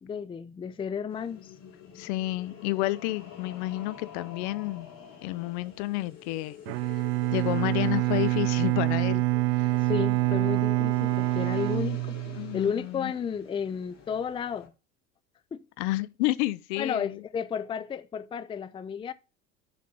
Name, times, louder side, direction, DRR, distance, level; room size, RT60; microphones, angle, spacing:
voice 1, 0.0-1.5 9.8-12.2 12.5-14.7 15.5-15.6 16.8-19.1, left 7 dB, 15° left, 0.5 m, -32 dB
sound 1, 1.1-14.7, left 9 dB, 45° left, 2.9 m, -47 dB
voice 2, 1.9-4.9 5.2-6.6 6.9-7.0 7.3-9.2 9.6-9.9 12.3-13.1 15.8-17.2, left 18 dB, 60° left, 0.7 m, -30 dB
Bowed string instrument, 6.7-12.7, right 22 dB, 60° right, 0.5 m, -26 dB
6.8 x 5.2 x 6.5 m
hypercardioid pair, 70°, 38 cm